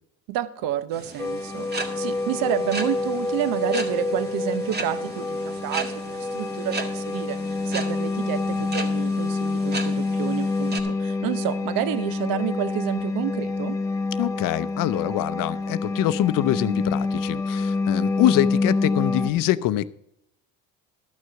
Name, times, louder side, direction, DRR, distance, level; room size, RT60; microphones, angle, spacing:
voice 1, 0.3-13.8, right 12 dB, 70° right, 14 dB, 0.8 m, -29 dB
sound 1, 0.9-10.8, right 3 dB, 30° right, 1.7 m, -36 dB
sound 2, 1.2-19.3, left 3 dB, 10° left, 0.8 m, -27 dB
voice 2, 14.2-19.9, left 13 dB, 65° left, 15 dB, 0.6 m, -24 dB
12.5 x 6.4 x 5.8 m, 0.79 s
cardioid pair, 110°, 35 cm